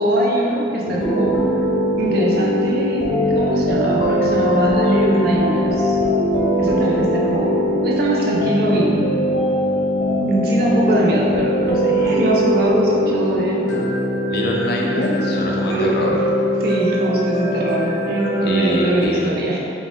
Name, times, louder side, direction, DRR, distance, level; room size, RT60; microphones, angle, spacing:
voice 1, 0.0-1.4 2.0-6.0 6.6-9.1 10.2-13.7 15.7-15.9 16.6-19.6, right 1 dB, 55° right, -3 dB, 0.5 m, -21 dB
sound 1, 0.8-19.1, equal, 85° left, 0.7 m, -21 dB
voice 2, 14.3-16.2 18.4-19.2, left 1 dB, 60° left, -2 dB, 0.5 m, -24 dB
4.0 x 2.4 x 3.6 m, 3.0 s
head